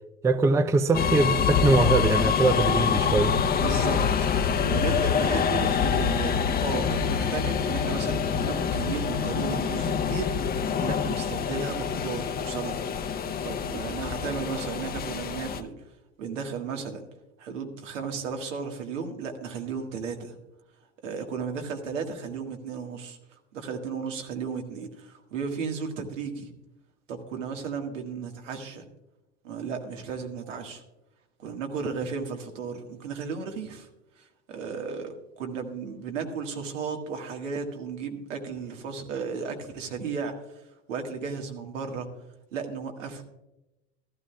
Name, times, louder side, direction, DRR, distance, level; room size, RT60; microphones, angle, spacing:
voice 1, 0.2-3.3, right 3 dB, 10° right, 0.4 m, -22 dB
sound 1, 0.9-15.6, left 6 dB, 25° left, 0.7 m, -26 dB
voice 2, 3.6-4.0 4.3-10.5 10.8-15.7 16.2-17.0 17.4-20.4 21.0-26.5 27.1-28.8 29.4-30.8 31.4-33.9 34.2-40.6 40.9-42.1 42.5-43.2, right 5 dB, 85° right, 1.7 m, -34 dB
15.0 x 12.5 x 2.3 m
hypercardioid pair, 95°, 37 cm